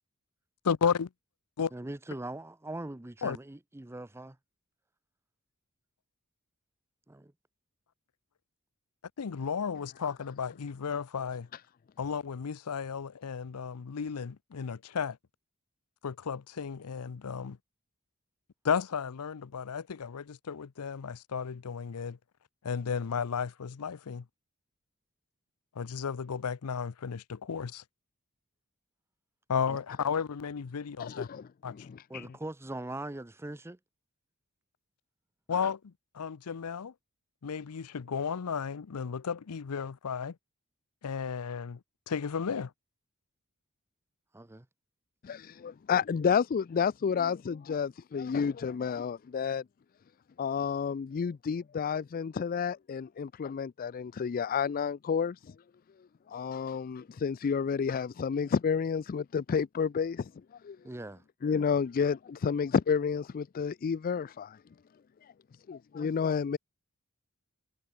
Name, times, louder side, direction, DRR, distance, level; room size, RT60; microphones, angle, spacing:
voice 1, 0.6-1.1 1.6-1.7 3.2-3.4 9.2-11.5 12.0-15.2 16.0-17.6 18.6-22.2 22.6-24.2 25.8-27.8 29.5-31.3 31.6-31.9 35.5-36.9 37.4-40.4 41.0-41.8 42.1-42.7, left 6 dB, 85° left, 0.6 m, -33 dB
voice 2, 1.7-4.4 7.1-7.3 29.7-29.8 32.1-33.8 44.3-44.7 60.8-61.2, right 1 dB, 10° right, 0.6 m, -41 dB
voice 3, 31.0-32.3 45.2-49.6 50.4-55.5 56.3-60.3 60.6-60.8 61.4-64.6 65.2-65.3 65.7-66.6, left 6 dB, 40° left, 0.3 m, -30 dB
head